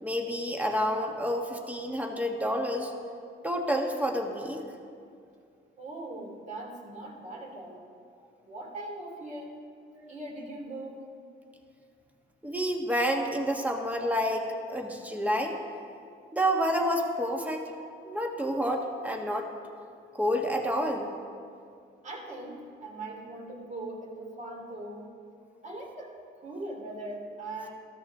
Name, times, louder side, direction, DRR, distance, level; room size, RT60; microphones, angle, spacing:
voice 1, 0.0-2.9 3.4-4.7 10.0-10.1 12.4-15.6 16.3-17.7 18.0-19.5 20.1-21.1, equal, 5° right, 2 dB, 1.5 m, -29 dB
voice 2, 5.8-7.8 8.4-9.5 10.1-11.0 22.0-25.1 25.6-27.7, right 2 dB, 35° right, 0 dB, 2.6 m, -40 dB
14.0 x 13.0 x 3.6 m, 2.3 s
cardioid pair, 90°, 20 cm